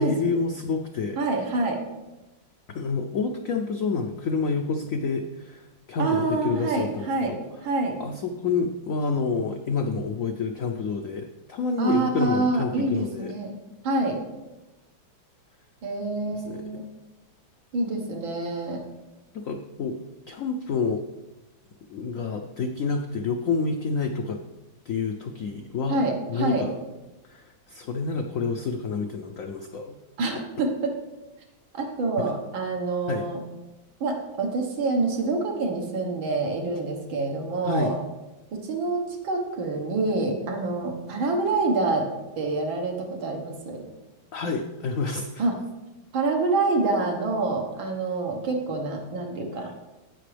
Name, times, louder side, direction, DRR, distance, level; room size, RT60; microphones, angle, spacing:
voice 1, 0.0-1.2 2.7-7.4 8.0-13.3 16.3-16.6 19.3-20.0 20.3-21.1 21.9-24.4 24.9-26.0 26.3-26.8 27.2-30.0 32.2-32.3 33.1-33.3 37.6-37.9 44.3-45.4 49.6-49.7, left 4 dB, 85° left, 4 dB, 0.7 m, -28 dB
voice 2, 1.2-1.8 6.0-7.3 7.6-8.0 11.8-13.5 13.8-14.2 15.8-16.8 17.7-18.8 25.9-26.6 30.2-30.9 31.7-33.4 34.0-38.0 38.5-42.1 42.4-43.8 45.4-45.6 46.1-49.7, right 3 dB, 80° right, 1 dB, 2.1 m, -26 dB
16.5 x 6.0 x 3.3 m, 1.1 s
omnidirectional pair, 2.1 m